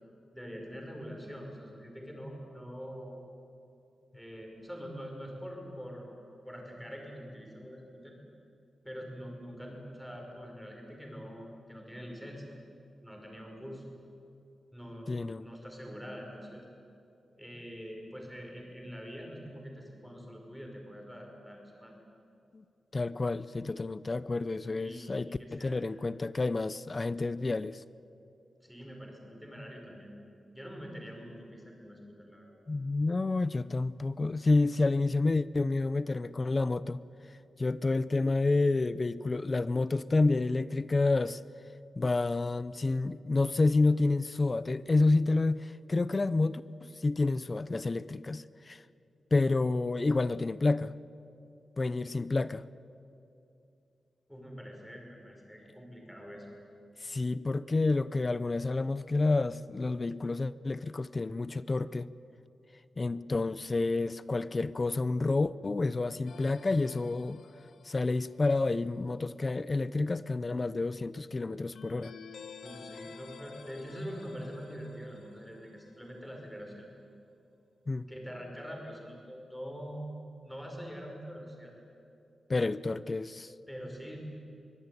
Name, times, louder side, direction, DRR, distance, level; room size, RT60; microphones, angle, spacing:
voice 1, 0.3-3.2 4.1-6.1 6.4-8.2 8.8-12.5 13.0-13.8 14.7-16.7 17.4-21.9 24.8-25.8 28.6-30.2 30.5-32.6 54.3-56.5 72.6-76.9 78.1-80.0 80.4-81.7 83.7-84.2, equal, ahead, 5.4 m, -44 dB
voice 2, 15.1-15.5 22.5-22.6 22.9-27.8 32.7-37.0 37.6-41.4 42.0-48.8 49.3-50.9 51.8-52.6 57.0-62.1 63.0-67.4 67.9-72.1 77.9-78.1 82.5-83.5, left 3 dB, 25° left, 0.6 m, -29 dB
sound 1, 66.3-68.6 71.7-76.2, left 5 dB, 65° left, 1.4 m, -51 dB
24.0 x 22.5 x 9.7 m
wide cardioid pair, 170°, 0 cm